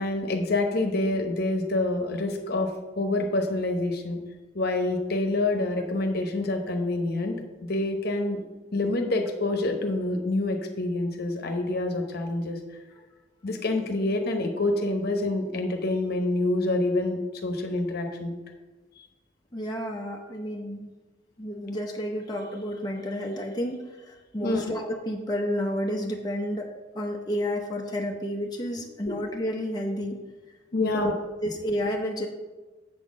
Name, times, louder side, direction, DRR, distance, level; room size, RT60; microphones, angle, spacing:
voice 1, 0.0-2.7 3.0-4.2 4.5-7.3 7.7-8.4 8.7-12.6 13.4-18.3 24.4-24.7 29.0-29.2 30.7-31.1, left 2 dB, 55° left, 4 dB, 1.0 m, -27 dB
voice 2, 19.5-20.9 21.4-26.7 26.9-30.2 30.8-31.1 31.4-32.3, equal, 20° left, 0 dB, 0.8 m, -31 dB
7.7 x 4.3 x 6.2 m, 1.2 s
head